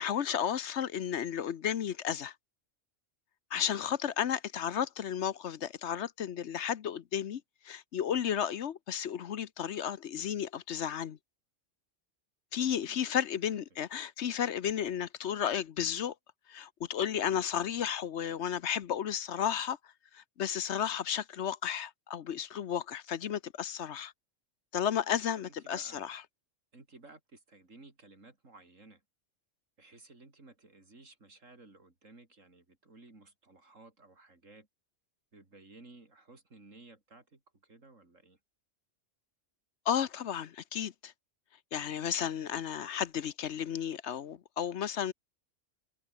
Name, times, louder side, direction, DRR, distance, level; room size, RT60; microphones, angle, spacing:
voice 1, 0.0-2.3 3.5-11.2 12.5-16.1 16.5-19.8 20.1-24.1 24.7-26.2 39.9-41.1 41.7-45.1, left 9 dB, 65° left, 1.1 m, -33 dB
voice 2, 12.5-13.0 13.4-13.6 25.4-26.1 26.7-29.0 29.8-34.7 35.3-38.4, right 3 dB, 85° right, 4.4 m, -56 dB
omnidirectional pair, 1.3 m